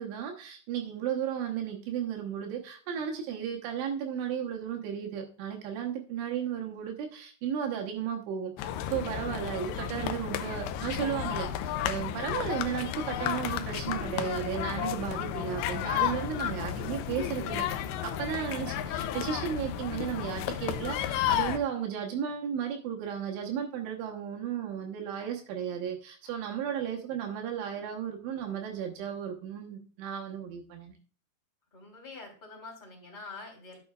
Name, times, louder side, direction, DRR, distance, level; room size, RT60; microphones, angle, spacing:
voice 1, 0.0-31.0, right 8 dB, 75° right, 1 dB, 3.4 m, -34 dB
sound 1, 8.6-21.6, left 10 dB, 85° left, 2.7 m, -32 dB
voice 2, 31.7-33.8, left 3 dB, 15° left, -1 dB, 2.2 m, -45 dB
12.0 x 7.7 x 2.4 m, 0.42 s
omnidirectional pair, 5.7 m